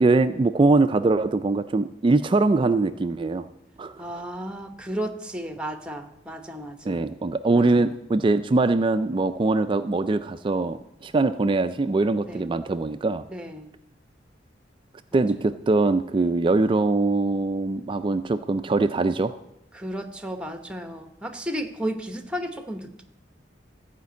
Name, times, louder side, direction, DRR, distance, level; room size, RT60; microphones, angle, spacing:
voice 1, 0.0-3.5 3.8-4.1 6.8-13.2 15.1-19.3, right 3 dB, 30° right, 10 dB, 0.3 m, -22 dB
voice 2, 4.0-7.0 7.5-7.9 12.3-12.5 13.3-13.7 15.1-15.2 19.7-23.0, equal, 5° right, 6 dB, 1.0 m, -33 dB
14.5 x 5.1 x 8.2 m, 0.84 s
head